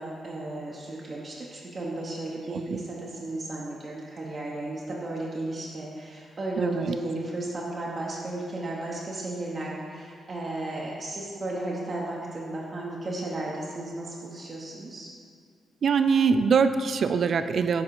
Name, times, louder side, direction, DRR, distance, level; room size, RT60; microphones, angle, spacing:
voice 1, 0.0-15.1, right 2 dB, 40° right, -4 dB, 1.0 m, -34 dB
voice 2, 6.6-7.0 15.8-17.8, right 5 dB, 60° right, 10 dB, 0.3 m, -23 dB
7.4 x 4.0 x 4.8 m, 2.2 s
cardioid pair, 75°, 0 cm